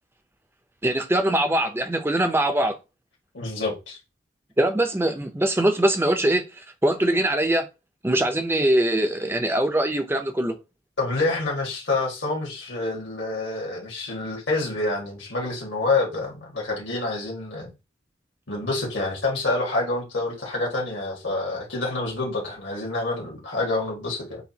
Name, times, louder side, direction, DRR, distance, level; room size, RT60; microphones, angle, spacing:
voice 1, 0.8-2.8 4.6-6.5 6.8-7.7 8.0-10.6, right 1 dB, 10° right, 0.5 m, -22 dB
voice 2, 3.3-4.0 11.0-17.7 18.5-24.4, left 2 dB, 75° left, 1.8 m, -27 dB
6.9 x 2.4 x 2.8 m
head